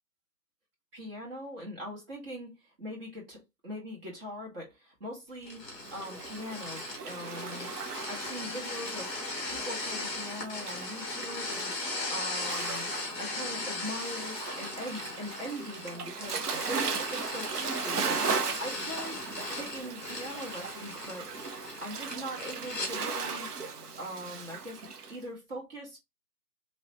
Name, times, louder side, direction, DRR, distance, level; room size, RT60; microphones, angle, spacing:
voice 1, 0.9-3.4 3.6-7.7 8.0-11.7 12.1-12.9 13.2-16.4 16.7-18.2 18.6-19.2 19.5-21.3 21.8-23.5 24.0-26.0, equal, 35° right, 1.6 m, -41 dB
sound 1, 5.4-22.9, left 3 dB, 10° left, 0.8 m, -38 dB
Waves surf, 5.7-25.2, right 5 dB, 65° right, 0.8 m, -37 dB
3.0 x 3.0 x 2.9 m
hypercardioid pair, 155°, 50 cm